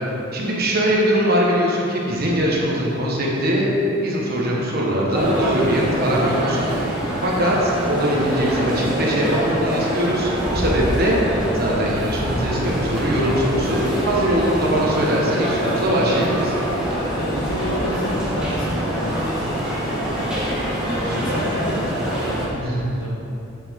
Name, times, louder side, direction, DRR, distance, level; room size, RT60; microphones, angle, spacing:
voice 1, 0.3-6.6 7.2-11.2 11.5-16.5 21.3-21.4 22.6-22.9, equal, 50° right, -3 dB, 1.4 m, -21 dB
sound 1, 5.1-22.5, equal, 5° right, 1.6 m, -24 dB
voice 2, 17.2-20.2 20.8-23.1, equal, 70° left, -4 dB, 1.7 m, -30 dB
8.0 x 7.6 x 3.8 m, 2.8 s
head